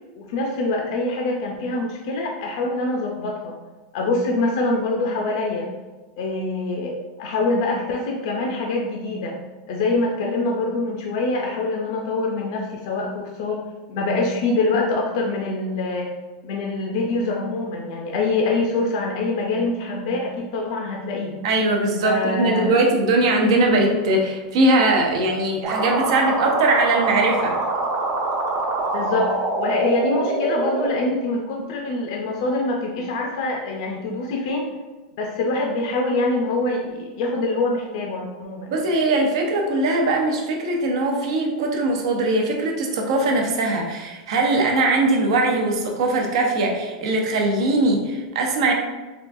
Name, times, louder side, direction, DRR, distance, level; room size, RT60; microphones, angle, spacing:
voice 1, 0.2-3.6 3.9-5.7 6.2-9.4 9.7-13.6 13.9-16.1 16.4-21.4 22.0-22.8 28.9-34.7 35.2-38.8, left 2 dB, 60° left, 0 dB, 0.4 m, -24 dB
voice 2, 21.4-27.6 38.7-48.7, right 2 dB, 70° right, 1 dB, 0.6 m, -20 dB
sound 1, 25.6-30.9, right 2 dB, 35° right, 0.6 m, -24 dB
3.6 x 2.3 x 2.5 m, 1.2 s
supercardioid pair, 160°, 3 cm